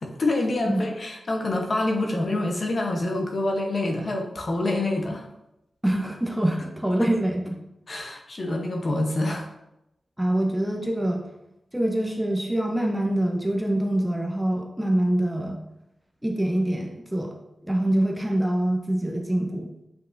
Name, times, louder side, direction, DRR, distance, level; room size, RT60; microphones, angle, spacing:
voice 1, 0.0-5.3 7.0-7.1 7.9-9.5, left 2 dB, 40° left, 2 dB, 0.9 m, -26 dB
voice 2, 5.8-7.5 10.2-11.3 11.7-15.6 16.2-17.3 17.6-19.7, right 1 dB, 5° right, 1 dB, 0.6 m, -25 dB
8.1 x 5.3 x 2.6 m, 0.87 s
wide cardioid pair, 160°, 0 cm